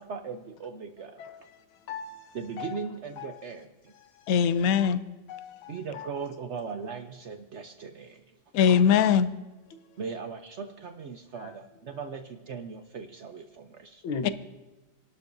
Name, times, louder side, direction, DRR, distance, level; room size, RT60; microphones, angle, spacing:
voice 1, 0.0-1.2 2.3-3.9 5.7-8.2 10.0-14.0, right 5 dB, 85° right, 0.6 m, -39 dB
voice 2, 1.2-2.9 3.2-3.4 3.9-4.5 5.3-6.2 11.4-11.5 11.9-12.0 14.0-14.3, left 5 dB, 90° left, 1.8 m, -40 dB
voice 3, 4.3-5.0 8.5-9.3 14.2-14.3, left 7 dB, 70° left, 0.8 m, -21 dB
29.5 x 11.5 x 2.7 m
omnidirectional pair, 2.2 m